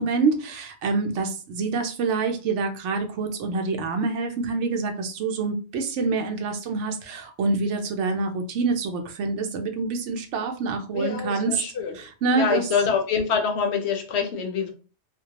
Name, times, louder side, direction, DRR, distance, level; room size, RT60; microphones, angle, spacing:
voice 1, 0.0-11.6 11.9-12.7, right 4 dB, 80° right, 5 dB, 0.9 m, -26 dB
voice 2, 10.9-12.0 12.3-14.7, left 6 dB, 70° left, 3 dB, 0.8 m, -25 dB
2.3 x 2.2 x 2.8 m, 0.35 s
omnidirectional pair, 1.2 m